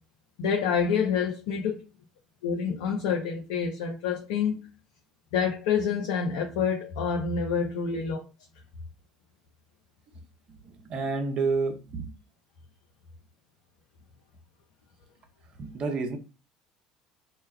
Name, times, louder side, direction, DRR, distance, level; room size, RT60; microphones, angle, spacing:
voice 1, 0.4-1.8 2.4-4.7 5.3-8.2, left 6 dB, 65° left, 0.4 m, -27 dB
voice 2, 10.6-12.1 15.6-16.2, right 4 dB, 40° right, 0.6 m, -29 dB
2.2 x 2.1 x 3.2 m
figure-of-eight pair, 60°, 2 cm